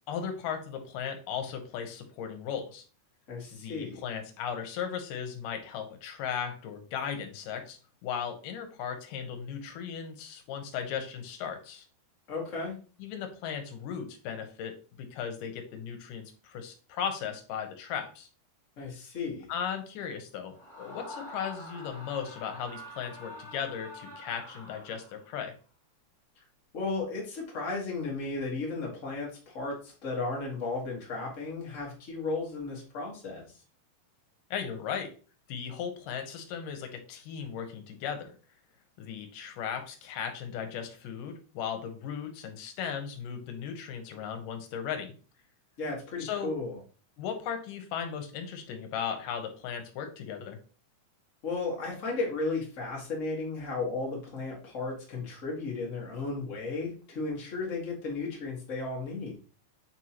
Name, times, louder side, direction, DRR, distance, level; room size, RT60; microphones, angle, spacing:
voice 1, 0.1-2.8 3.5-11.9 13.0-18.3 19.5-25.5 34.5-35.1 35.5-38.3 39.0-45.1 46.2-46.5 47.2-50.6, left 7 dB, 70° left, 6 dB, 2.2 m, -37 dB
voice 2, 3.3-4.0 12.3-12.7 18.8-19.5 26.4-26.5 26.7-33.6 45.8-46.8 51.4-59.3, left 3 dB, 85° left, -2 dB, 0.7 m, -34 dB
Screaming, 20.5-25.4, left 1 dB, 25° right, 0.6 m, -46 dB
7.9 x 4.5 x 2.9 m, 0.37 s
omnidirectional pair, 4.6 m